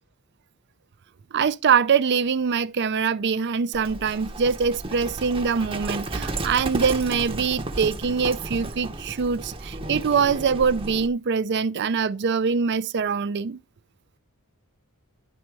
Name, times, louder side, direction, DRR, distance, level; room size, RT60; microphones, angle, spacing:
voice 1, 1.3-13.6, right 6 dB, 50° right, 0.5 m, -23 dB
Livestock farm animals working animals, 3.7-11.1, right 2 dB, 25° right, 0.8 m, -33 dB
11.0 x 4.3 x 4.5 m
head